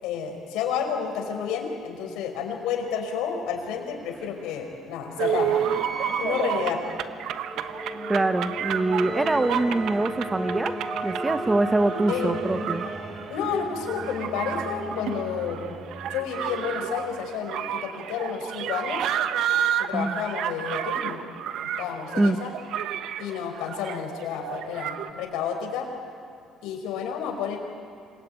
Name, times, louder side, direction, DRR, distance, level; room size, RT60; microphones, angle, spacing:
voice 1, 0.0-5.6 6.2-6.8 12.1-12.4 13.3-15.8 16.1-19.1 19.8-21.2 21.6-22.5 23.2-25.9 26.6-27.6, left 7 dB, 90° left, 3 dB, 5.3 m, -30 dB
sound 1, 3.5-17.2, right 1 dB, 35° right, 3.5 m, -36 dB
sound 2, 5.2-25.1, right 9 dB, 75° right, 1.1 m, -31 dB
voice 2, 8.1-10.7 11.0-12.9 19.9-20.2 22.2-22.4, right 2 dB, 15° right, 11 dB, 1.0 m, -24 dB
27.5 x 22.0 x 9.4 m, 2.5 s
cardioid pair, 110°, 0 cm